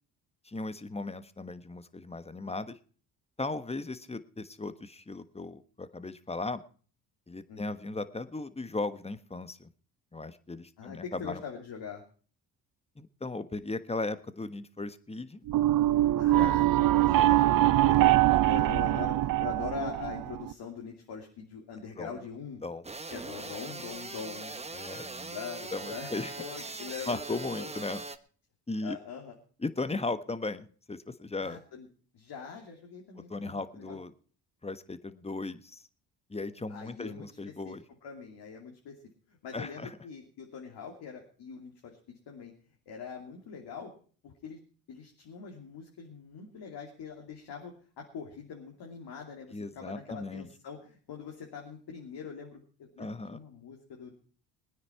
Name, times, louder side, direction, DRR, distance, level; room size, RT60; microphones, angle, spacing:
voice 1, 0.4-2.8 3.4-6.6 7.3-9.7 10.1-11.4 13.0-15.5 16.2-16.8 17.2-17.4 22.0-22.1 22.6-22.8 24.7-25.1 25.7-26.3 27.1-28.0 28.7-29.0 29.6-31.6 33.3-34.1 34.6-35.8 36.3-37.8 39.5-40.0 49.5-50.5 53.0-53.4, left 3 dB, 15° left, 12 dB, 1.3 m, -37 dB
voice 2, 7.5-7.8 10.8-12.0 16.2-18.0 18.4-22.6 23.1-24.6 25.0-27.7 28.8-29.4 31.4-31.9 32.1-34.0 36.7-37.8 38.0-39.0 39.3-42.5 42.9-43.9 44.2-44.6 44.9-54.1, left 6 dB, 60° left, 0 dB, 2.9 m, -43 dB
sound 1, 15.5-20.5, right 14 dB, 50° right, 0.7 m, -23 dB
sound 2, 22.8-28.2, right 3 dB, 15° right, 1.2 m, -41 dB
21.0 x 9.6 x 4.6 m, 0.43 s
hypercardioid pair, 55°, 44 cm